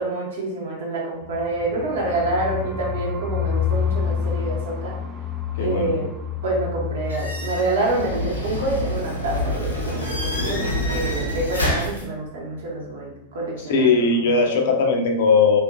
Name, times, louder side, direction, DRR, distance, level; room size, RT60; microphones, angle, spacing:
voice 1, 0.0-5.0 5.6-6.0 6.4-14.3, right 2 dB, 60° right, -2 dB, 0.8 m, -27 dB
sound 1, 1.2-11.0 11.2-11.3 11.6-12.1, left 7 dB, 20° right, 0.3 m, -29 dB
voice 2, 5.6-5.9 13.7-15.6, left 4 dB, 55° left, 3 dB, 0.4 m, -18 dB
sound 2, 7.1-12.0, left 1 dB, 85° left, 0.8 m, -27 dB
2.8 x 2.3 x 2.3 m, 0.86 s
figure-of-eight pair, 90°, 0 cm